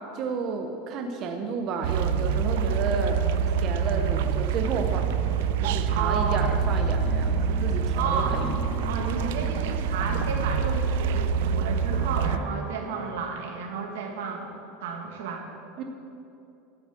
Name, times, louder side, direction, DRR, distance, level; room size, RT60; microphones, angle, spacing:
voice 1, 0.1-3.2 3.6-5.1 5.6-8.6 15.8-15.9, right 4 dB, 35° right, 4 dB, 0.7 m, -32 dB
sound 1, 1.8-13.1, right 2 dB, 5° right, 0.8 m, -41 dB
sound 2, 1.8-12.4, right 7 dB, 70° right, 0.4 m, -26 dB
sound 3, 4.5-12.6, left 4 dB, 30° left, 1.5 m, -38 dB
voice 2, 5.9-6.4 7.9-8.4 8.8-14.5 14.8-15.5, right 5 dB, 85° right, 2 dB, 1.9 m, -32 dB
12.0 x 7.3 x 7.4 m, 2.8 s
supercardioid pair, 165°, 0 cm